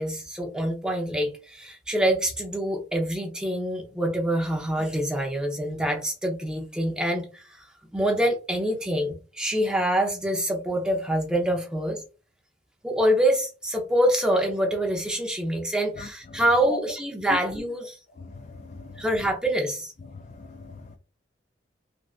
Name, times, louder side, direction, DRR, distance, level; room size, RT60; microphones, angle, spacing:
voice 1, 0.0-7.6 7.9-12.0 12.8-18.0 19.0-19.9, right 1 dB, 5° right, 0.7 m, -25 dB
voice 2, 18.2-19.0 20.1-21.0, left 3 dB, 40° left, 0.3 m, -38 dB
3.5 x 2.5 x 2.4 m
head